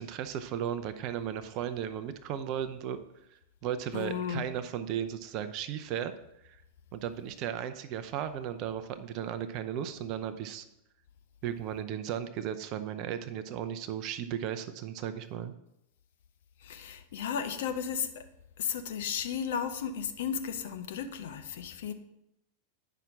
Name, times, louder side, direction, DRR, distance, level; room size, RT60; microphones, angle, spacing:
voice 1, 0.0-3.0 3.6-6.1 6.4-6.6 6.9-10.6 11.4-15.5, right 9 dB, 40° right, 11 dB, 0.6 m, -35 dB
voice 2, 3.9-4.5 16.6-18.3 18.6-21.9, left 7 dB, 55° left, 8 dB, 0.6 m, -34 dB
9.0 x 5.9 x 3.6 m, 0.82 s
figure-of-eight pair, 90°, 0 cm